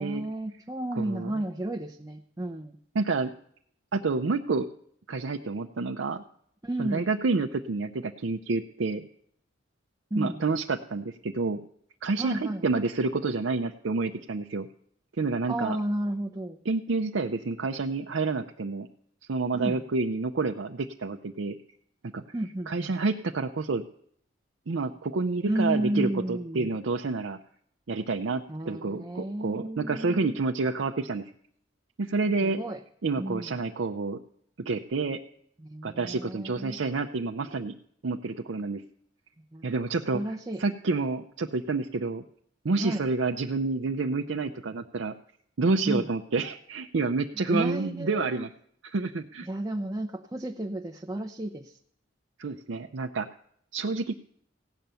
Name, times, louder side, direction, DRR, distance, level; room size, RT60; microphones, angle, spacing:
voice 1, 0.0-2.8 6.6-7.1 10.1-10.4 12.2-12.7 15.5-16.6 19.5-19.8 22.3-22.9 25.5-26.8 28.5-30.4 32.4-32.8 33.2-33.6 35.6-36.8 39.5-39.7 40.1-40.6 42.8-43.0 45.8-46.1 47.3-48.5 49.4-51.8, right 1 dB, 15° right, 3 dB, 0.6 m, -32 dB
voice 2, 1.0-1.3 2.9-3.3 3.9-4.7 5.1-6.2 6.8-9.0 10.2-11.6 12.0-14.7 15.2-15.8 16.7-18.9 19.3-21.6 22.1-22.2 22.7-23.8 24.7-27.4 27.9-31.3 32.0-32.6 33.0-34.2 34.6-35.2 35.8-37.7 38.0-38.8 39.6-40.2 40.6-42.2 42.6-45.1 45.6-48.5 48.8-49.5 52.4-53.3 53.7-54.2, right 3 dB, 75° right, 3 dB, 0.6 m, -29 dB
16.0 x 9.0 x 6.9 m, 0.67 s
head